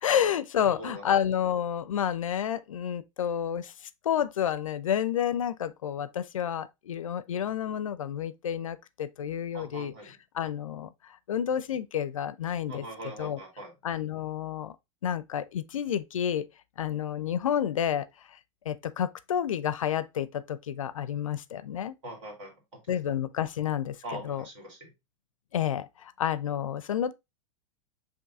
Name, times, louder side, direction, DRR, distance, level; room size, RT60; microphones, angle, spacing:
voice 1, 0.0-3.7 4.0-10.9 11.3-13.4 13.8-14.8 15.0-16.5 16.8-18.1 18.7-21.9 22.9-24.4 25.5-25.9 26.2-27.1, left 9 dB, 75° left, 0.4 m, -30 dB
voice 2, 0.6-1.2 9.5-10.1 12.7-13.7 22.0-22.5 24.0-24.9, right 1 dB, 65° right, 2.0 m, -41 dB
6.8 x 2.6 x 2.5 m
figure-of-eight pair, 90°, 17 cm